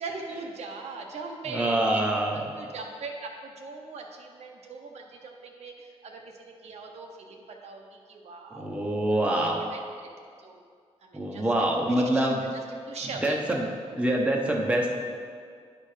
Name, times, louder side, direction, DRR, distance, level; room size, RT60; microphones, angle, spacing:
voice 1, 0.0-9.1 9.4-9.8 10.4-10.6 11.0-11.4 12.1-12.3 12.5-13.4, right 4 dB, 80° right, 1 dB, 1.0 m, -40 dB
voice 2, 1.5-2.7 8.6-9.6 11.1-12.4 13.2-13.7 14.0-14.9, right 1 dB, 10° right, -1 dB, 0.9 m, -25 dB
9.9 x 4.3 x 4.9 m, 2.1 s
wide cardioid pair, 125°, 11 cm